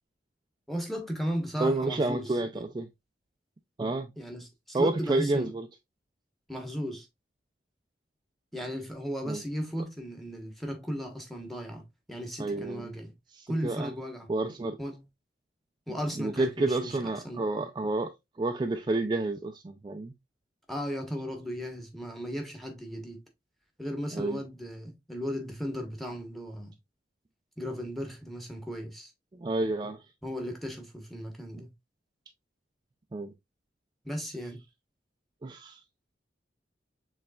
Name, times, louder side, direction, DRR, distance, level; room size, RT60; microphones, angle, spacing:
voice 1, 0.7-2.6 4.2-5.5 6.5-7.1 8.5-13.1 13.5-14.3 14.8-15.0 15.9-17.4 20.7-23.2 23.8-26.7 27.6-29.1 30.2-31.7 34.0-34.6, equal, ahead, 1.1 m, -36 dB
voice 2, 1.6-2.9 3.8-4.1 4.7-5.7 9.2-9.4 12.4-12.9 13.3-13.9 14.3-14.8 15.9-20.1 24.1-24.4 29.3-30.0 33.1-33.3 35.4-35.8, right 2 dB, 25° right, 0.3 m, -30 dB
6.7 x 3.2 x 2.3 m
head